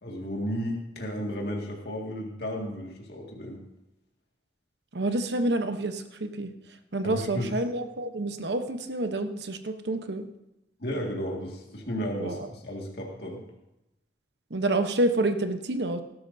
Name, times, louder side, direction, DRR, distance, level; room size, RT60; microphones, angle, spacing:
voice 1, 0.0-3.6 7.0-7.6 10.8-13.4, equal, 65° left, -1 dB, 2.0 m, -33 dB
voice 2, 4.9-6.5 6.9-10.3 12.2-12.5 14.5-16.0, right 2 dB, 75° right, 8 dB, 1.0 m, -28 dB
19.0 x 12.0 x 2.7 m, 0.91 s
head